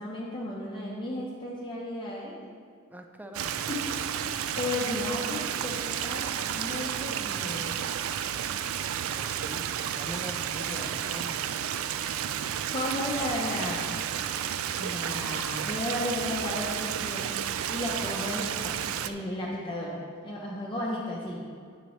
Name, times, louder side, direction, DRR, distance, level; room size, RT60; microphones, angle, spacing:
voice 1, 0.0-2.4 3.7-3.9 4.6-7.9 10.7-11.3 12.7-13.9 14.8-21.4, left 1 dB, 25° left, -4 dB, 0.8 m, -34 dB
voice 2, 2.9-3.7 9.1-10.8 11.1-11.5, equal, 10° right, 5 dB, 0.4 m, -43 dB
Stream, 3.3-19.1, right 9 dB, 70° right, 0.3 m, -32 dB
9.9 x 7.5 x 3.1 m, 2.2 s
head